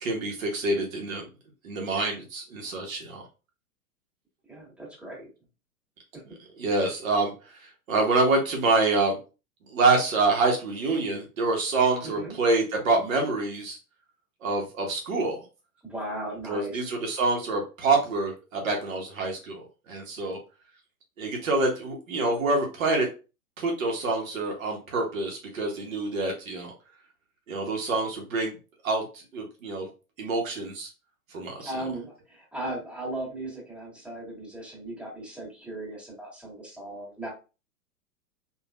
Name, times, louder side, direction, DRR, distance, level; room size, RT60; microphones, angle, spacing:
voice 1, 0.0-1.2 1.6-3.2 6.6-9.2 9.7-13.8 14.4-15.4 16.5-20.4 21.2-23.1 23.6-26.7 27.5-28.5 28.8-29.9 30.2-30.9 31.3-31.7, right 3 dB, 60° right, 1 dB, 1.0 m, -26 dB
voice 2, 4.5-5.3 12.0-12.4 15.8-16.9 31.6-37.3, right 1 dB, 5° right, -5 dB, 1.7 m, -37 dB
3.3 x 2.5 x 2.4 m, 0.31 s
figure-of-eight pair, 105°, 45 cm